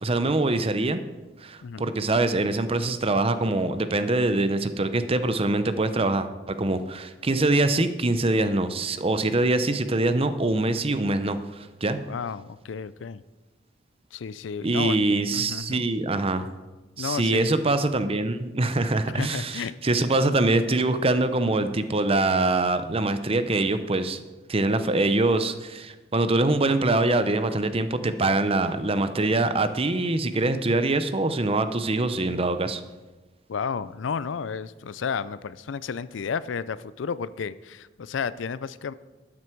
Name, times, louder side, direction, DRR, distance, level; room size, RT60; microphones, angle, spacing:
voice 1, 0.0-1.0 1.4-12.0 14.6-16.5 17.0-24.2 24.5-32.8, right 2 dB, 30° right, 11 dB, 0.7 m, -24 dB
voice 2, 1.6-1.9 12.1-13.2 14.1-15.0 15.3-15.9 17.0-17.6 19.1-19.7 33.5-38.9, left 6 dB, 85° left, 17 dB, 0.4 m, -32 dB
12.5 x 9.8 x 4.6 m, 1.1 s
head